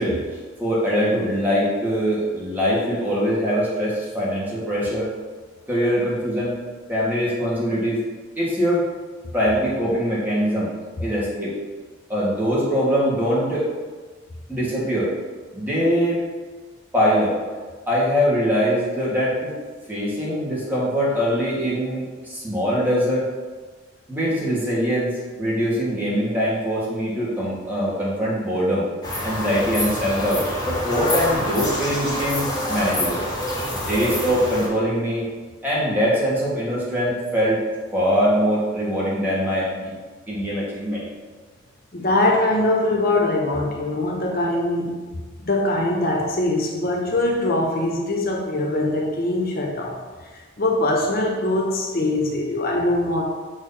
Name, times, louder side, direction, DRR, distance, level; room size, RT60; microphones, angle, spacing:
voice 1, 0.0-5.1 5.7-6.6 6.9-8.0 8.4-8.8 9.3-10.7 11.0-11.5 12.1-13.6 14.5-15.1 15.5-16.2 16.9-17.4 17.9-19.5 19.9-23.3 24.1-25.1 25.4-28.8 29.2-33.2 33.7-35.2 35.6-37.6 37.9-39.9 40.3-41.0, equal, 10° right, -7 dB, 1.7 m, -22 dB
sound 1, 29.0-34.7, left 1 dB, 20° left, 1.7 m, -26 dB
voice 2, 41.9-45.1 45.4-53.2, left 2 dB, 45° left, -1 dB, 0.7 m, -22 dB
6.3 x 3.2 x 5.7 m, 1.4 s
head